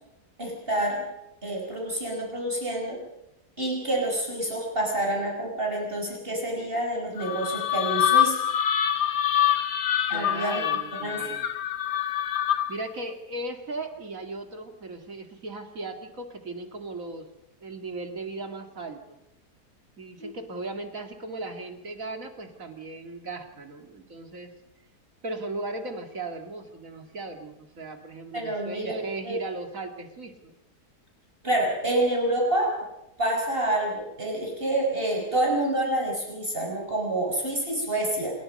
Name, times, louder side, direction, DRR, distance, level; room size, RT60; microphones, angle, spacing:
voice 1, 0.4-1.0 1.4-3.0 3.6-8.4 10.1-10.6 11.0-11.3 20.2-20.3 28.3-28.9 29.2-29.4 31.4-32.7 33.2-38.3, right 1 dB, 35° right, -1 dB, 5.9 m, -27 dB
sound 1, 7.2-12.9, left 10 dB, 85° left, 1.9 m, -25 dB
voice 2, 10.1-11.4 12.7-17.2 17.6-19.2 20.0-24.5 25.2-30.5, right 2 dB, 55° right, 5 dB, 2.9 m, -37 dB
27.5 x 21.5 x 5.5 m, 0.87 s
omnidirectional pair, 1.7 m